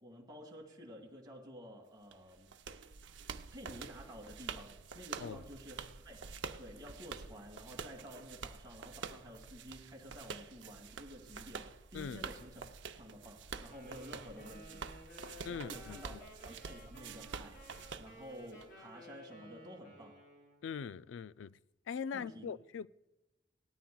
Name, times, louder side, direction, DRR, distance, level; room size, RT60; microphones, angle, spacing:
voice 1, 0.0-2.5 3.5-6.3 6.6-12.6 13.0-14.9 15.5-17.7 18.0-20.2 22.1-22.5, equal, 20° right, 2.2 m, -51 dB
sound 1, 2.1-18.7, right 5 dB, 85° right, 0.6 m, -47 dB
voice 2, 11.9-12.3 15.4-16.2 20.6-21.6 21.9-22.9, left 6 dB, 85° left, 0.3 m, -42 dB
Wind instrument woodwind instrument, 13.7-20.7, equal, 65° left, 3.7 m, -55 dB
18.5 x 13.0 x 2.3 m
head